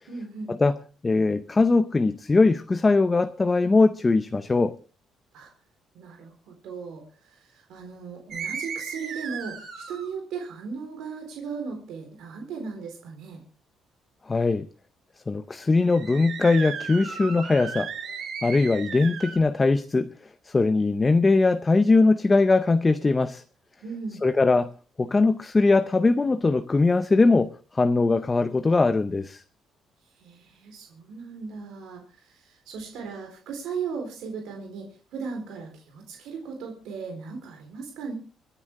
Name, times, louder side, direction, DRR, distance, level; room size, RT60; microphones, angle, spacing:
voice 1, 0.1-0.5 5.3-5.5 5.9-13.4 23.8-24.2 30.0-38.1, right 5 dB, 85° right, 4.1 m, -37 dB
voice 2, 1.0-4.7 14.3-14.7 15.3-17.9 18.4-20.1 20.4-23.4 24.2-24.7 25.0-29.4, left 3 dB, 15° left, 0.6 m, -21 dB
sound 1, 8.3-10.1 15.8-19.4, right 6 dB, 50° right, 3.9 m, -35 dB
26.5 x 9.9 x 3.6 m
cardioid pair, 165°, 0 cm